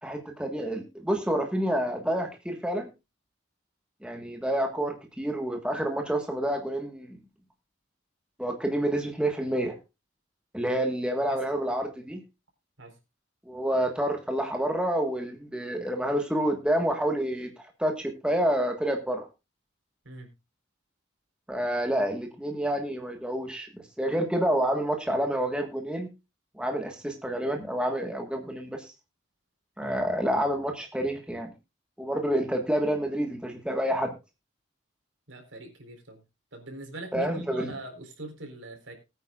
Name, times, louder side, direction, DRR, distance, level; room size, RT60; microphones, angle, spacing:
voice 1, 0.0-2.9 4.0-7.2 8.4-9.8 10.5-12.2 13.5-19.3 21.5-26.1 26.6-28.9 29.8-31.5 32.0-34.1 37.1-37.7, right 1 dB, 5° right, 3 dB, 1.5 m, -28 dB
voice 2, 35.3-36.2 36.5-39.0, right 2 dB, 75° right, 4 dB, 4.1 m, -42 dB
20.5 x 9.0 x 2.4 m, 0.26 s
head